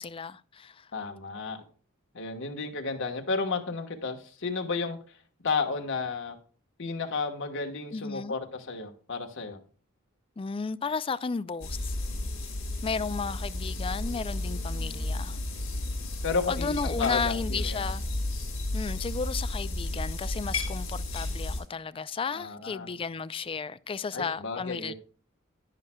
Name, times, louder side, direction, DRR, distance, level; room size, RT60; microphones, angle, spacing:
voice 1, 0.0-0.9 7.9-8.3 10.4-11.9 12.8-15.4 16.5-18.0 18.7-24.9, left 5 dB, 25° left, 0.4 m, -33 dB
voice 2, 0.9-1.6 2.1-5.0 5.4-6.4 6.8-9.6 16.2-17.9 22.3-22.9 24.1-24.9, left 4 dB, 65° left, 1.3 m, -32 dB
sound 1, 11.6-21.6, left 2 dB, 80° left, 4.6 m, -33 dB
10.5 x 9.7 x 2.3 m
head